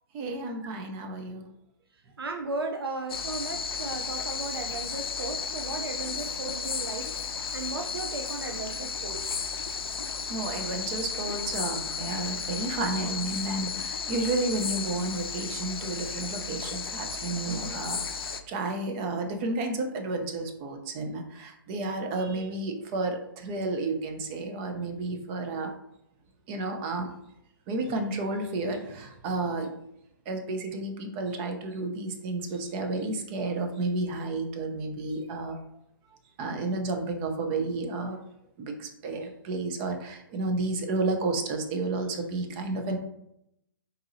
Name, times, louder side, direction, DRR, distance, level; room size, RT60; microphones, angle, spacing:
voice 1, 0.1-1.4 9.1-9.2 10.3-25.7 26.5-27.1 27.7-29.7 30.3-35.6 36.4-38.2 38.6-43.0, right 2 dB, 30° right, 4 dB, 0.5 m, -31 dB
voice 2, 2.2-7.1 7.5-9.3, right 3 dB, 85° right, 4 dB, 0.4 m, -36 dB
sound 1, 3.1-18.4, left 5 dB, 80° left, 0.4 m, -34 dB
3.9 x 2.7 x 2.6 m, 0.78 s
figure-of-eight pair, 130°, 12 cm